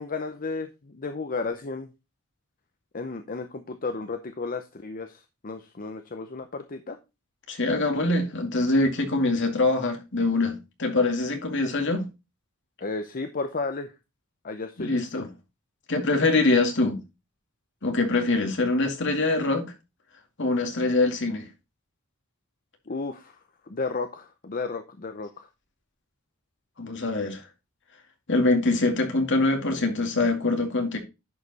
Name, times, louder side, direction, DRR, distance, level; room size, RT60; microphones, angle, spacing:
voice 1, 0.0-1.9 2.9-7.0 12.8-13.9 14.4-15.1 22.9-25.5, left 3 dB, 40° left, 0.8 m, -33 dB
voice 2, 7.5-12.1 14.8-15.3 15.9-17.0 17.8-19.7 20.4-21.5 26.8-27.4 28.3-31.0, left 2 dB, 60° left, 2.2 m, -24 dB
11.0 x 5.2 x 4.1 m
head